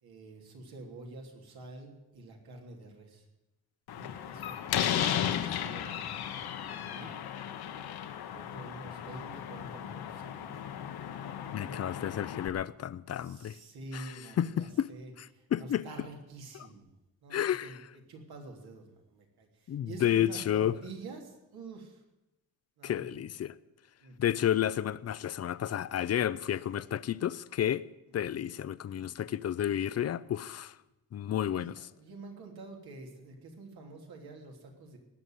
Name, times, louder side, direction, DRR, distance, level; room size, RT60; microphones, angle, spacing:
voice 1, 0.0-3.2 3.9-7.1 8.2-10.7 11.5-12.1 13.1-16.9 17.2-17.8 18.1-22.0 22.8-23.2 24.0-24.4 28.2-28.3 31.5-35.0, right 3 dB, 80° right, 3.2 m, -48 dB
Slam, 3.9-12.5, left 10 dB, 85° left, 1.2 m, -35 dB
voice 2, 11.5-13.5 13.9-14.9 15.2-15.8 17.3-17.8 19.7-20.7 22.8-23.5 24.2-27.8 28.1-30.7 31.1-31.8, left 10 dB, 45° left, 0.5 m, -31 dB
19.0 x 7.0 x 9.3 m
wide cardioid pair, 145°, 37 cm